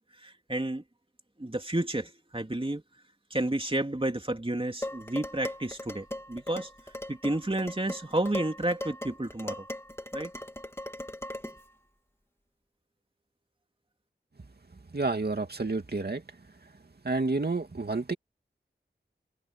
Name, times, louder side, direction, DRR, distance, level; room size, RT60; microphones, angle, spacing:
voice 1, 0.2-0.8 1.4-2.8 3.3-6.7 7.1-9.6 10.1-10.3, right 1 dB, 30° right, 3.0 m, -31 dB
Dishes pots and pans, 4.8-11.7, left 1 dB, 15° left, 3.3 m, -39 dB
voice 2, 14.9-16.2 17.0-18.1, right 3 dB, 55° right, 2.5 m, -29 dB
wide cardioid pair, 45°, 19 cm